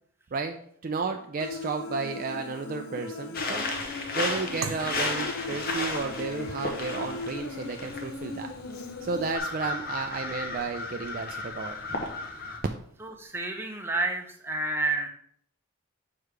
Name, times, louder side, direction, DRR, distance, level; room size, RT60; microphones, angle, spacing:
voice 1, 0.8-3.7 4.1-8.5 9.0-12.0, right 4 dB, 40° right, 5 dB, 0.3 m, -33 dB
Human voice, 1.4-9.4, left 3 dB, 85° left, 0.6 m, -39 dB
sound 1, 3.3-12.6, left 3 dB, 45° left, 0.9 m, -34 dB
sound 2, 4.6-13.4, right 5 dB, 75° right, 0.7 m, -47 dB
voice 2, 13.0-15.1, right 3 dB, 10° right, 2 dB, 0.7 m, -30 dB
6.5 x 4.8 x 3.2 m, 0.66 s
head